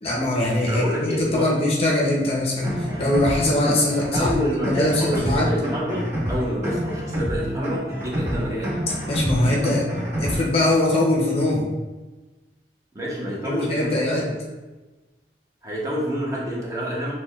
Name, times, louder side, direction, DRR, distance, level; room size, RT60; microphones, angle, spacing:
voice 1, 0.0-4.4 4.6-5.5 9.1-9.9 10.2-11.7 13.4-14.3, left 1 dB, 35° left, -2 dB, 0.5 m, -22 dB
voice 2, 0.7-1.5 4.1-8.7 12.9-14.2 15.6-17.1, equal, 20° right, -5 dB, 0.7 m, -28 dB
sound 1, 2.6-10.4, equal, 40° right, 1.1 m, -27 dB
6.0 x 2.2 x 2.3 m, 1.2 s
head